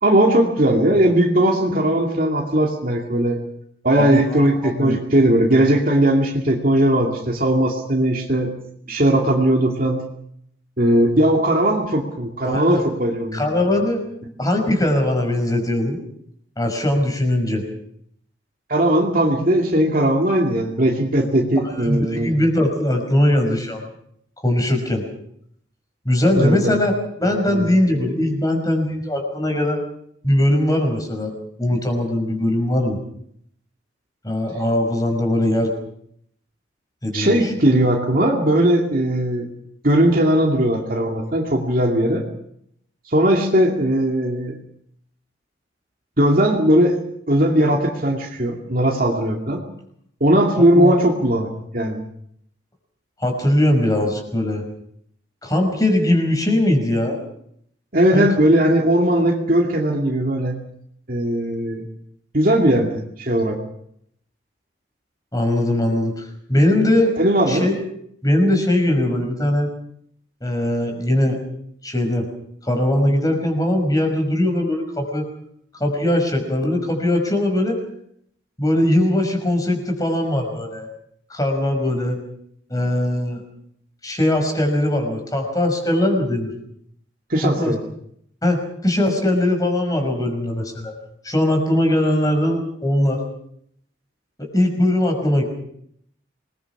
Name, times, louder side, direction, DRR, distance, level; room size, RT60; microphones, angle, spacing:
voice 1, 0.0-3.4 3.8-8.6 8.9-10.1 10.8-13.4 18.7-22.3 26.4-26.8 27.2-27.7 37.1-39.5 39.8-42.2 43.1-44.6 46.2-47.0 47.3-49.6 50.2-52.0 57.9-60.6 61.1-61.9 62.3-63.6 67.2-67.7 87.3-87.8, right 1 dB, 45° right, 1 dB, 2.5 m, -18 dB
voice 2, 4.0-5.0 12.4-12.8 13.3-14.0 14.4-16.0 16.6-17.6 21.8-23.9 24.4-25.0 26.1-26.9 27.2-29.8 30.2-33.0 34.2-35.7 37.0-37.5 50.6-50.9 53.2-54.6 55.4-57.2 58.1-58.3 65.3-67.1 67.5-67.7 68.2-69.7 70.4-71.4 71.8-72.3 72.6-75.3 75.8-77.8 78.6-80.9 81.3-82.2 82.7-83.4 84.0-86.5 87.4-87.7 88.4-90.9 91.2-93.2 94.4-95.4, left 1 dB, 20° left, 3 dB, 5.5 m, -20 dB
27.0 x 21.0 x 6.1 m, 0.69 s
head